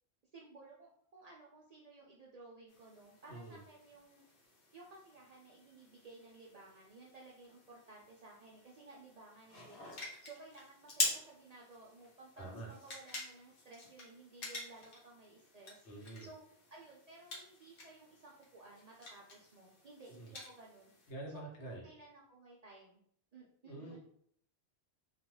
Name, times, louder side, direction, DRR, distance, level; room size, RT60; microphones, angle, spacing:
voice 1, 0.3-4.3 4.7-20.9 21.3-22.9 23.3-24.0, right 3 dB, 60° right, -4 dB, 0.4 m, -56 dB
sound 1, 2.7-21.1, left 2 dB, 65° left, 1.0 m, -46 dB
voice 2, 12.4-12.7 15.8-16.3 20.2-20.3 21.1-21.8 23.6-24.0, right 2 dB, 85° left, -2 dB, 1.1 m, -46 dB
2.4 x 2.2 x 3.0 m, 0.64 s
omnidirectional pair, 1.1 m